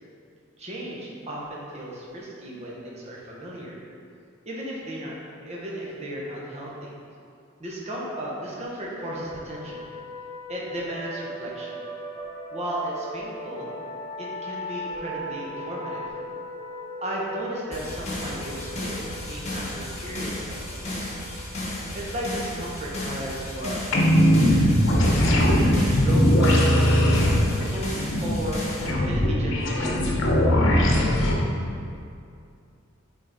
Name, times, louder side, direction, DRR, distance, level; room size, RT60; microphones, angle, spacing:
voice 1, 0.6-3.8 4.4-5.2 5.4-6.9 7.6-9.8 10.5-11.8 12.5-13.7 14.2-16.0 17.0-21.2 21.9-24.7 25.4-28.0 28.2-28.6 29.0-30.0, right 1 dB, 35° right, -4 dB, 1.1 m, -34 dB
sound 1, 9.0-24.3, left 1 dB, 15° left, 0.8 m, -39 dB
sound 2, 17.7-28.9, left 1 dB, 35° left, 1.3 m, -34 dB
sound 3, 23.9-31.4, equal, 65° left, 0.9 m, -20 dB
6.4 x 3.9 x 4.0 m, 2.4 s
head